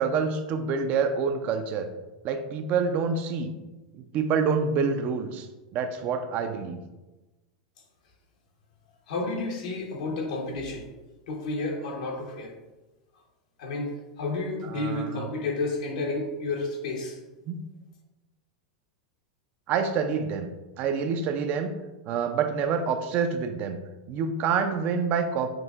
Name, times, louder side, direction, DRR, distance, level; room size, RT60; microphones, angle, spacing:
voice 1, 0.0-1.9 2.2-3.5 3.9-5.5 5.7-6.8 14.7-15.3 17.5-17.6 19.7-20.5 20.8-21.7 22.1-23.8 24.1-25.5, right 5 dB, 45° right, 7 dB, 0.4 m, -27 dB
voice 2, 9.1-10.9 11.3-12.6 13.6-17.2, left 2 dB, 75° left, 1 dB, 1.0 m, -31 dB
6.1 x 2.6 x 2.4 m, 1.1 s
hypercardioid pair, 115°, 4 cm